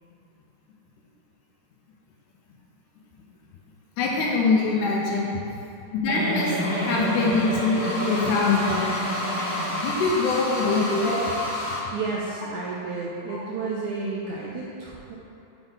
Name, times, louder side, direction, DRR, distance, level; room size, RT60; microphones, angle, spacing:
voice 1, 4.0-5.4 5.9-9.0 9.8-11.1 13.3-13.4, left 3 dB, 80° left, -3 dB, 2.0 m, -24 dB
Giggle, 6.1-10.3 10.6-10.7 11.0-11.2, equal, 55° right, 1.4 m, -30 dB
sound 1, 6.6-11.8, left 1 dB, 40° left, 0.8 m, -31 dB
voice 2, 11.6-15.2, right 4 dB, 80° right, -4 dB, 1.7 m, -32 dB
7.0 x 3.7 x 3.9 m, 2.9 s
omnidirectional pair, 3.8 m